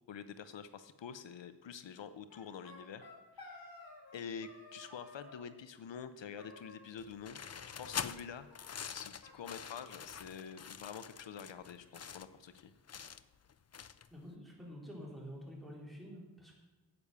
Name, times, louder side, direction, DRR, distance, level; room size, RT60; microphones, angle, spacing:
voice 1, 0.1-3.1 3.3-3.6 4.1-7.4 7.8-8.5 8.9-12.7, left 7 dB, 85° left, 12 dB, 0.7 m, -47 dB
sound 1, 2.3-4.2 4.4-5.5 6.4-7.1 7.4-8.2 8.5-8.6 8.9-9.0 9.2-10.3, left 2 dB, 55° left, 2.5 m, -55 dB
sound 2, 7.0-14.2, left 7 dB, 35° left, 0.5 m, -45 dB
voice 2, 14.1-16.5, equal, ahead, -2 dB, 3.9 m, -48 dB
9.7 x 8.5 x 6.8 m, 1.2 s
wide cardioid pair, 65°, 43 cm